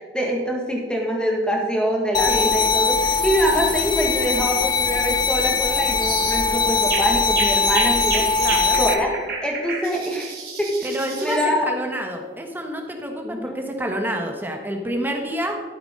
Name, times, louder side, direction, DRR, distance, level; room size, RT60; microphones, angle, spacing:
voice 1, 0.0-8.3 8.8-9.1 9.4-10.3 10.6-11.7 13.2-13.5, equal, 5° left, -1 dB, 1.7 m, -24 dB
sound 1, 2.1-8.9, left 4 dB, 25° left, 0.6 m, -21 dB
sound 2, 6.0-6.4 6.8-11.5, right 4 dB, 55° right, 2.3 m, -30 dB
voice 2, 8.4-8.8 10.8-15.6, equal, 10° right, 2 dB, 1.2 m, -28 dB
13.0 x 8.2 x 3.8 m, 1.5 s
head